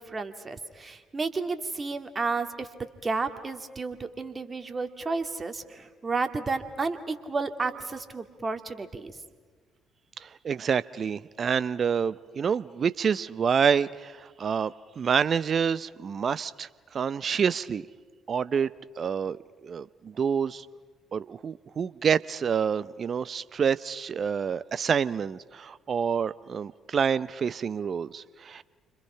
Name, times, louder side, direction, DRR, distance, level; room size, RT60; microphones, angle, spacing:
voice 1, 0.0-2.7 3.0-9.2, right 4 dB, 35° right, 7 dB, 2.4 m, -32 dB
voice 2, 10.2-17.8 18.3-18.7 19.0-20.7 21.1-28.6, right 7 dB, 50° right, 17 dB, 0.7 m, -28 dB
30.0 x 25.5 x 5.7 m, 1.5 s
hypercardioid pair, 45°, 0 cm